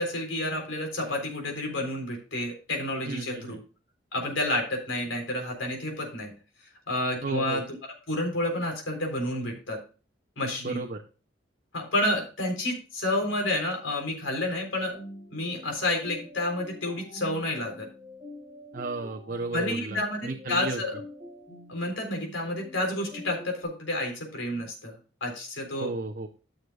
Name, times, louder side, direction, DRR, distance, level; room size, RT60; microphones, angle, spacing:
voice 1, 0.0-3.6 4.1-6.3 6.9-9.8 10.4-10.8 11.7-15.0 15.3-17.9 19.5-21.0 21.7-24.9 25.2-25.9, left 1 dB, 90° left, 1 dB, 3.7 m, -30 dB
voice 2, 3.1-3.6 7.2-7.6 10.6-11.0 18.7-20.8 25.8-26.3, right 3 dB, 45° right, 1 dB, 0.7 m, -34 dB
sound 1, 14.9-23.6, left 1 dB, 20° right, 4.2 m, -45 dB
14.0 x 6.6 x 2.4 m, 0.35 s
head